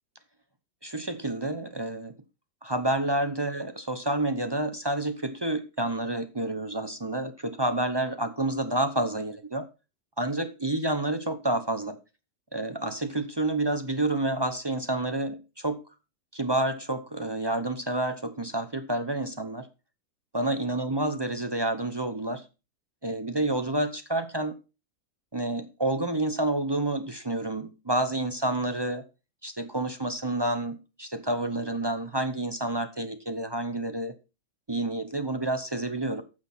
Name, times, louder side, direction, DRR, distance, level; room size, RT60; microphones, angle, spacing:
voice 1, 0.8-2.1 2.6-9.6 10.2-12.0 12.5-15.8 16.3-19.7 20.3-22.4 23.0-24.5 25.3-29.0 29.4-34.1 34.7-36.2, right 1 dB, 25° right, 0.5 m, -29 dB
8.9 x 6.2 x 5.8 m
omnidirectional pair, 1.6 m